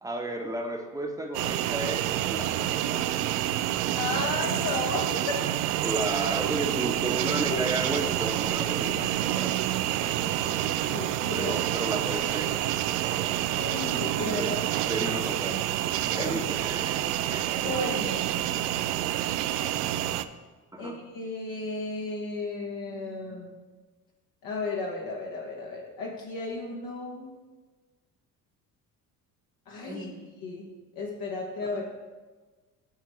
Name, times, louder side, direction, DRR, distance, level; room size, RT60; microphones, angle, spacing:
voice 1, 0.0-3.1 5.8-9.5 11.3-12.6 14.3-14.5 14.8-15.6 16.1-17.7 20.7-21.0 29.9-30.3 31.7-31.8, right 2 dB, 5° right, 2 dB, 1.1 m, -33 dB
sound 1, 1.3-20.3, right 13 dB, 70° right, 0.5 m, -28 dB
voice 2, 3.9-5.4 7.5-7.6 9.9-11.5 13.6-14.8 16.2-16.3 17.6-18.4 20.8-23.5 24.4-27.4 29.7-30.1 30.4-30.7 30.9-31.8, left 2 dB, 45° left, -2 dB, 1.3 m, -34 dB
12.5 x 4.3 x 3.2 m, 1.3 s
figure-of-eight pair, 55°, 49 cm